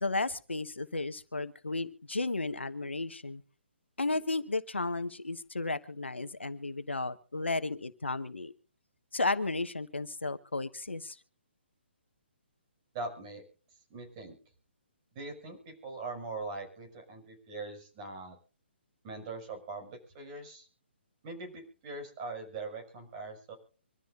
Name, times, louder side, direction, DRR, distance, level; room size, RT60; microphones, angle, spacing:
voice 1, 0.0-3.4 4.0-8.5 9.1-11.2, left 3 dB, 75° left, 12 dB, 1.2 m, -33 dB
voice 2, 12.9-13.4 13.9-14.4 15.1-18.4 19.0-20.7 21.2-23.5, right 3 dB, 30° right, 4 dB, 6.1 m, -41 dB
25.0 x 13.5 x 2.6 m, 0.40 s
figure-of-eight pair, 135°, 6 cm